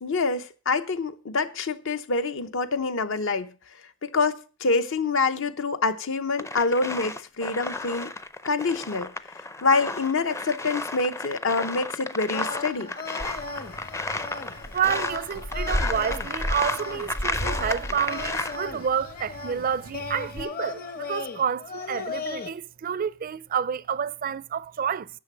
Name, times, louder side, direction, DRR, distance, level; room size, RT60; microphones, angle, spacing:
voice 1, 0.0-3.5 4.0-8.1 8.4-9.1 9.6-12.9, left 3 dB, 65° left, 0.8 m, -26 dB
sound 1, 6.4-18.6, left 2 dB, 15° left, 0.5 m, -33 dB
sound 2, 12.3-22.5, left 4 dB, 45° left, 1.0 m, -37 dB
sound 3, 13.2-20.4, equal, 85° left, 2.3 m, -35 dB
voice 2, 14.7-25.1, right 8 dB, 45° right, 0.4 m, -29 dB
10.5 x 6.6 x 6.0 m
head